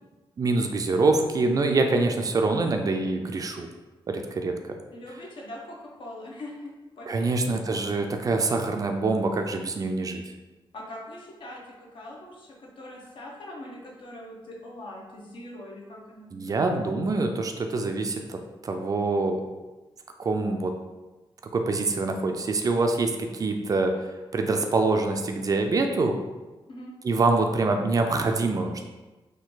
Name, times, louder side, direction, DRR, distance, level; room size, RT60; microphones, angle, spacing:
voice 1, 0.4-3.7 4.1-4.8 7.1-10.2 16.3-18.4 18.6-19.4 20.2-20.7 21.5-23.9 24.3-26.2 27.0-28.8, right 3 dB, 40° right, 5 dB, 0.4 m, -25 dB
voice 2, 4.9-7.3 10.7-16.4 26.7-26.9, left 1 dB, 60° left, -2 dB, 1.0 m, -42 dB
4.4 x 2.6 x 3.9 m, 1.2 s
wide cardioid pair, 145°, 9 cm